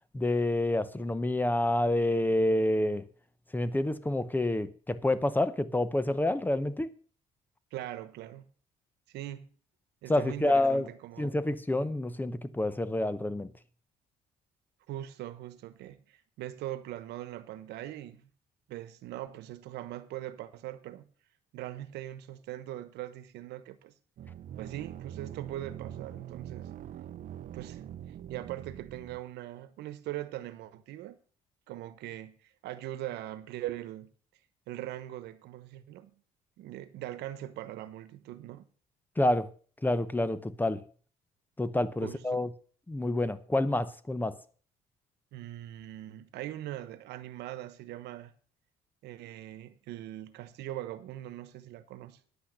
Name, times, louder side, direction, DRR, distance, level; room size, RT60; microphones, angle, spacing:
voice 1, 0.1-3.0 3.5-6.9 10.1-10.9 11.2-13.5 39.2-39.5 39.8-40.8 41.6-42.5 42.9-44.4, left 1 dB, 10° left, 0.8 m, -28 dB
voice 2, 7.7-8.5 9.1-9.5 10.0-11.3 14.9-18.3 18.7-21.1 21.5-23.9 24.6-26.7 27.5-27.8 28.3-31.2 31.7-34.1 34.7-36.1 36.6-38.7 42.0-42.4 45.3-48.3 49.0-52.2, right 13 dB, 80° right, 1.1 m, -41 dB
sound 1, 24.2-29.2, right 10 dB, 50° right, 0.7 m, -43 dB
10.0 x 8.4 x 6.5 m
cardioid pair, 110°, 17 cm